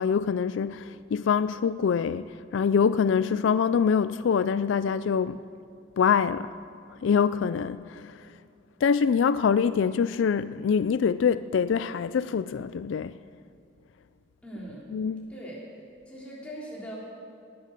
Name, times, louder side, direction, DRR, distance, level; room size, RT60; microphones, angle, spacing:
voice 1, 0.0-5.4 6.0-6.5 7.0-8.3 8.8-13.2 14.9-15.2, left 6 dB, 75° left, 0.3 m, -25 dB
voice 2, 14.4-14.9 15.3-15.6 16.1-17.0, equal, 5° left, 3.6 m, -40 dB
19.0 x 10.0 x 6.5 m
head